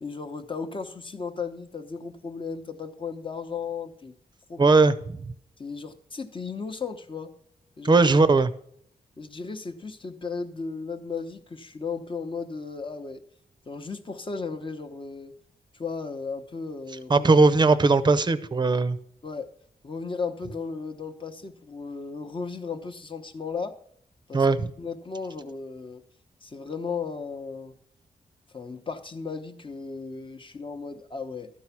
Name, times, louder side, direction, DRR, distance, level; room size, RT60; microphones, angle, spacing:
voice 1, 0.0-4.1 4.5-4.8 5.6-7.3 7.8-8.0 9.2-13.2 13.7-15.3 15.7-17.3 19.2-19.5 19.8-23.8 24.3-24.5 24.8-26.0 26.4-27.7 28.5-31.5, left 5 dB, 35° left, 7 dB, 0.9 m, -35 dB
voice 2, 4.6-4.9 7.8-8.5 17.1-19.0 24.3-24.7, right 3 dB, 30° right, 14 dB, 0.6 m, -19 dB
12.5 x 4.7 x 5.8 m, 0.67 s
wide cardioid pair, 100°, 15 cm